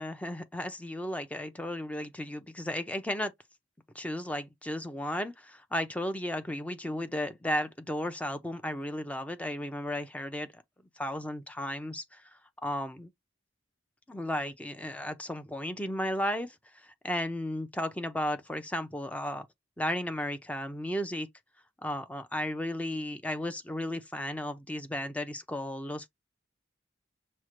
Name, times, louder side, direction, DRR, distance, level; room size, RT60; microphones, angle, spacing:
voice 1, 0.0-3.3 3.9-10.6 11.0-12.2 12.6-13.1 14.1-16.5 16.8-19.5 19.8-21.3 21.8-26.1, left 1 dB, 10° left, 0.5 m, -34 dB
6.1 x 2.1 x 3.0 m
head